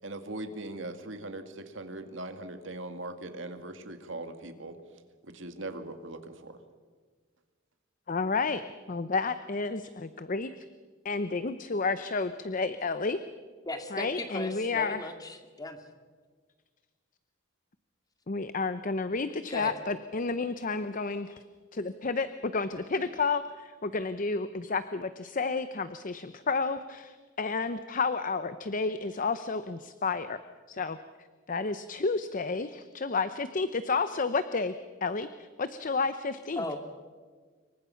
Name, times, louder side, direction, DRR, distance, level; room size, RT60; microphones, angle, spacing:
voice 1, 0.0-4.8 5.3-6.6, right 2 dB, 70° right, 7 dB, 2.1 m, -40 dB
voice 2, 8.1-8.6 8.9-10.5 11.0-13.2 13.9-15.0 18.3-21.4 21.7-30.4 30.7-31.0 31.5-34.7 35.0-35.3 35.6-36.6, left 4 dB, 40° left, 12 dB, 0.7 m, -31 dB
voice 3, 13.6-15.8 19.5-19.7 36.6-36.8, left 1 dB, 20° left, 6 dB, 2.2 m, -37 dB
26.5 x 23.5 x 5.8 m, 1.5 s
head